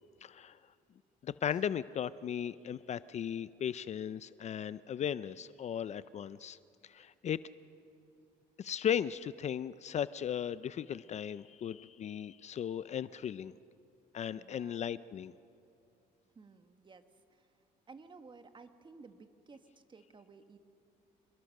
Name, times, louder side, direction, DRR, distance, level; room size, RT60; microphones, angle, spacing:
voice 1, 0.2-0.6 1.2-6.6 6.8-7.4 8.6-13.5 14.1-15.3, left 9 dB, 40° left, 16 dB, 0.5 m, -36 dB
voice 2, 14.4-14.8 16.3-17.0 17.3-17.4 17.9-20.6, right 4 dB, 30° right, 8 dB, 1.6 m, -55 dB
27.0 x 22.0 x 6.5 m, 2.6 s
cardioid pair, 110°, 17 cm